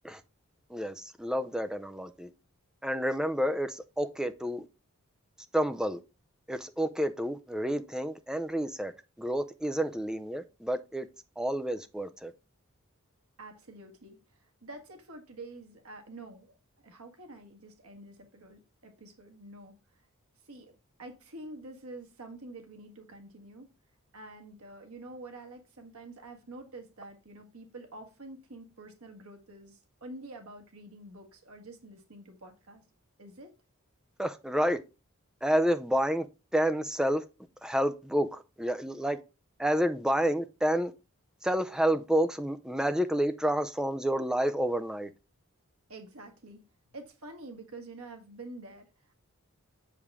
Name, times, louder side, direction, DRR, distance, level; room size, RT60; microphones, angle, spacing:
voice 1, 0.7-2.3 2.8-4.7 5.5-6.0 6.5-8.9 9.2-11.1 11.4-12.3 34.2-34.8 35.4-36.3 36.5-37.2 37.6-39.2 39.6-40.9 41.4-45.1, equal, 5° right, 0.5 m, -29 dB
voice 2, 13.4-16.5 16.8-20.0 20.4-23.7 24.1-32.8 33.2-33.5 45.9-46.6 46.9-49.2, right 2 dB, 85° right, 1.7 m, -47 dB
6.9 x 5.0 x 3.5 m
head